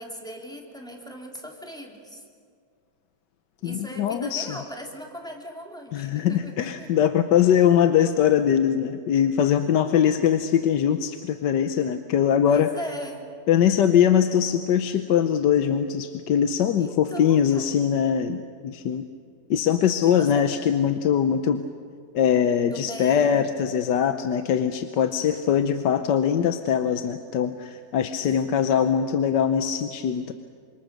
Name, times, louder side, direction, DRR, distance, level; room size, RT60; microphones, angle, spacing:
voice 1, 0.0-2.2 3.6-6.9 12.5-13.3 16.8-17.8 20.1-20.5 22.7-23.4 28.2-28.5, equal, ahead, 1 dB, 2.9 m, -39 dB
voice 2, 3.6-4.6 5.9-12.7 13.5-19.0 19.5-21.6 22.1-30.3, left 8 dB, 75° left, 8 dB, 1.5 m, -22 dB
27.5 x 26.0 x 6.6 m, 2.2 s
omnidirectional pair, 1.9 m